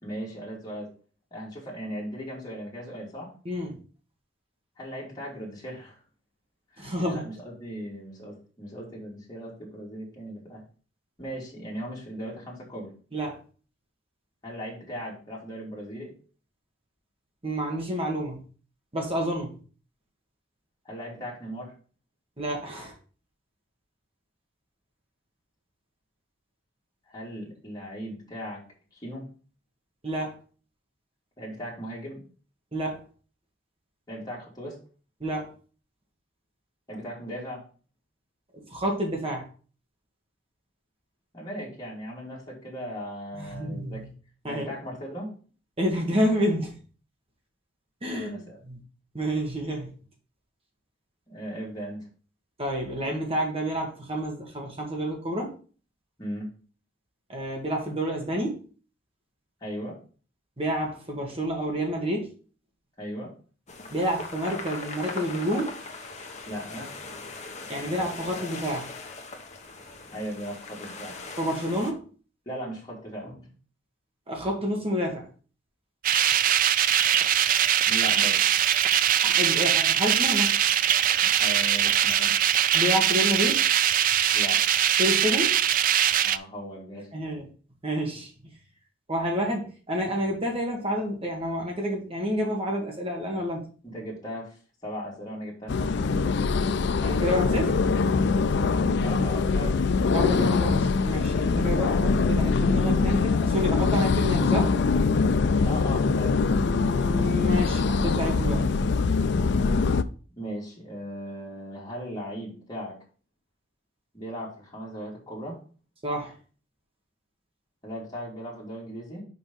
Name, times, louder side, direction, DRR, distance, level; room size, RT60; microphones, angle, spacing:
voice 1, 0.0-0.9 1.3-3.3 4.8-6.0 6.7-10.6 11.2-12.9 14.4-16.1 20.8-21.7 27.1-28.6 28.9-29.3 31.4-32.2 34.1-34.8 36.9-37.6 41.3-44.0 44.4-45.3 48.1-48.6 51.3-52.1 56.2-56.5 59.6-60.0 63.0-63.3 66.5-66.9 70.1-71.1 72.5-73.5 77.9-78.5 81.2-82.3 84.3-84.6 86.2-87.1 93.8-96.8 98.9-99.9 105.6-106.6 110.4-113.0 114.1-115.6 117.8-119.2, equal, 20° left, -6 dB, 2.7 m, -37 dB
voice 2, 3.5-3.8 6.8-7.2 13.1-13.4 17.4-18.4 18.9-19.6 22.4-22.9 30.0-30.4 32.7-33.0 35.2-35.5 38.5-39.4 43.4-44.1 44.4-44.7 45.8-46.7 48.0-48.8 49.1-49.9 52.6-55.5 57.3-58.6 60.6-62.3 63.9-65.8 67.7-68.9 71.4-72.0 74.3-75.3 79.2-80.6 82.7-83.6 85.0-85.6 87.1-87.5 87.8-88.3 89.1-93.7 97.0-97.8 100.1-104.7 106.7-108.7 116.0-116.3, equal, 30° right, 1 dB, 1.8 m, -29 dB
sound 1, 63.7-71.9, left 3 dB, 40° left, 1.1 m, -40 dB
sound 2, 76.0-86.4, right 10 dB, 45° right, 0.4 m, -22 dB
sound 3, 95.7-110.0, left 4 dB, 65° left, 0.4 m, -23 dB
5.5 x 5.0 x 5.4 m, 0.39 s
head